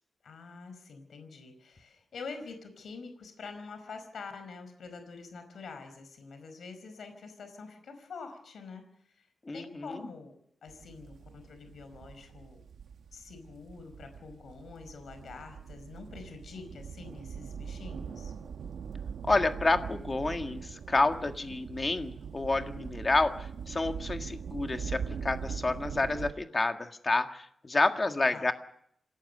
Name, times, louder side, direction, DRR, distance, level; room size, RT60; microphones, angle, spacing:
voice 1, 0.2-8.9 9.2-9.3 9.5-12.6 13.1-18.3 28.3-28.5, left 4 dB, 65° left, 8 dB, 4.9 m, -46 dB
voice 2, 9.5-10.1 19.3-23.3 23.7-28.5, left 3 dB, 25° left, 6 dB, 1.8 m, -29 dB
sound 1, 10.7-26.3, right 6 dB, 80° right, 1.3 m, -42 dB
27.0 x 18.0 x 6.7 m, 0.67 s
wide cardioid pair, 160°, 0 cm